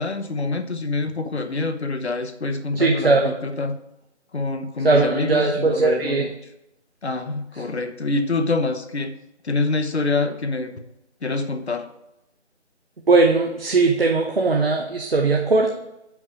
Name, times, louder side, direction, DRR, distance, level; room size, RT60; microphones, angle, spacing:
voice 1, 0.0-3.8 4.3-6.3 7.0-9.1 9.4-10.8 11.2-11.9, left 3 dB, 65° left, 8 dB, 0.9 m, -26 dB
voice 2, 2.8-3.3 4.8-6.3 13.1-15.8, right 3 dB, 55° right, 2 dB, 0.8 m, -19 dB
5.9 x 5.5 x 4.8 m, 0.88 s
figure-of-eight pair, 160°, 35 cm